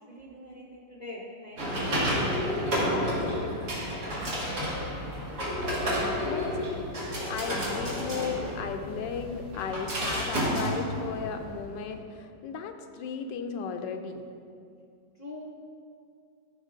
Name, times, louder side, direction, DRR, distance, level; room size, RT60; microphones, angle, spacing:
voice 1, 0.1-1.6 2.1-3.0 3.3-4.8 15.2-15.4, left 1 dB, 60° left, -4 dB, 0.4 m, -44 dB
sound 1, 1.6-11.6, equal, 60° right, 2.2 m, -30 dB
voice 2, 6.2-6.9 7.2-14.3, left 6 dB, 80° left, 6 dB, 1.3 m, -35 dB
13.5 x 5.6 x 2.5 m, 2.4 s
omnidirectional pair, 1.9 m